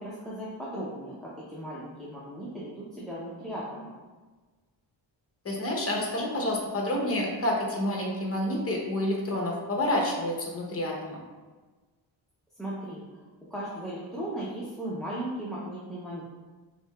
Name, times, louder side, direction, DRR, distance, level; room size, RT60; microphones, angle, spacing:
voice 1, 0.0-3.9 12.6-13.2 13.5-16.2, right 1 dB, ahead, -7 dB, 0.6 m, -37 dB
voice 2, 5.4-11.2, left 1 dB, 30° left, -1 dB, 0.9 m, -29 dB
6.2 x 2.8 x 2.3 m, 1.3 s
wide cardioid pair, 130°, 47 cm